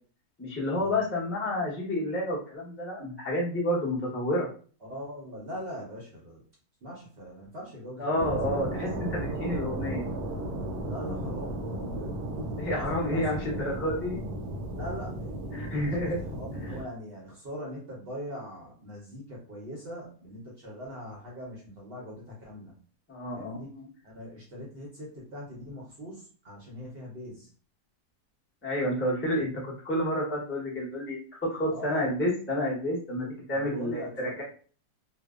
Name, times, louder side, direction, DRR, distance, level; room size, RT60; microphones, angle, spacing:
voice 1, 0.4-4.5 8.0-10.1 12.6-14.2 15.5-16.2 16.6-16.8 23.1-23.9 28.6-34.0 34.4-34.5, left 1 dB, 15° left, -5 dB, 0.4 m, -30 dB
voice 2, 4.8-6.4 6.8-8.6 10.8-12.2 12.7-13.7 14.7-22.7 23.3-23.8 24.0-27.5 31.7-32.1 33.5-34.4, equal, 55° right, -3 dB, 0.6 m, -41 dB
sound 1, 8.2-16.8, right 1 dB, 80° right, 1.1 m, -35 dB
2.7 x 2.0 x 2.3 m, 0.42 s
omnidirectional pair, 1.7 m